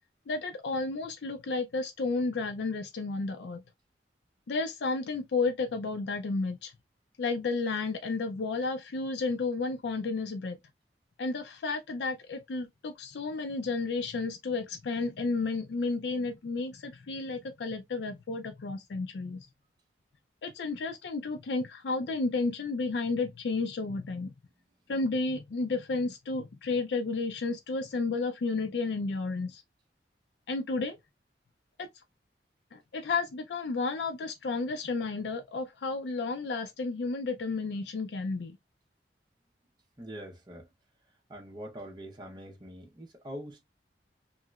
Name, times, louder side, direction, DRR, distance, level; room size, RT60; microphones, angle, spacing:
voice 1, 0.3-3.6 4.5-6.7 7.2-10.6 11.2-19.5 20.4-24.3 24.9-29.6 30.5-31.0 31.8-31.9 32.7-38.6, left 3 dB, 70° left, 0.4 m, -32 dB
voice 2, 40.0-40.6 41.3-43.6, equal, 25° right, 0.7 m, -43 dB
3.0 x 2.8 x 2.3 m
head